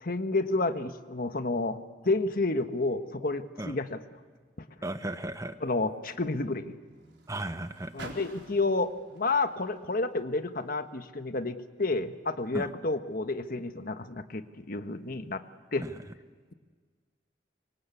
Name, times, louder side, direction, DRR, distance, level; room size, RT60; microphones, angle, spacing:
voice 1, 0.0-1.8 2.0-4.0 5.6-6.7 7.9-15.4 15.7-15.9, left 3 dB, 55° left, 9 dB, 1.4 m, -30 dB
Car, 4.4-11.0 11.8-11.9, right 2 dB, 85° right, 4.2 m, -53 dB
voice 2, 4.8-5.6 7.3-8.1 12.5-12.7 15.8-15.9, right 1 dB, 20° right, 10 dB, 1.0 m, -35 dB
25.5 x 25.0 x 8.5 m, 1.5 s
head